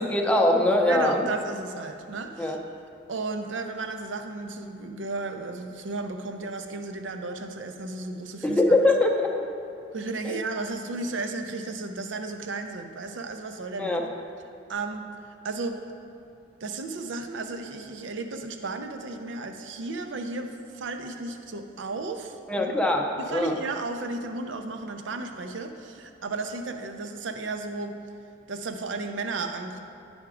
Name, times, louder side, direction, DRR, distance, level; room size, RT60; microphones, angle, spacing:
voice 1, 0.0-1.3 2.4-2.6 8.4-9.3 10.2-10.4 13.8-14.1 22.5-23.6, left 1 dB, 5° left, 1 dB, 0.5 m, -22 dB
voice 2, 0.9-2.6 3.1-8.8 9.9-14.0 14.7-15.0 15.4-15.8 16.6-22.8 23.2-28.0 28.5-29.8, right 3 dB, 85° right, 6 dB, 0.5 m, -34 dB
10.0 x 3.5 x 4.9 m, 2.5 s
head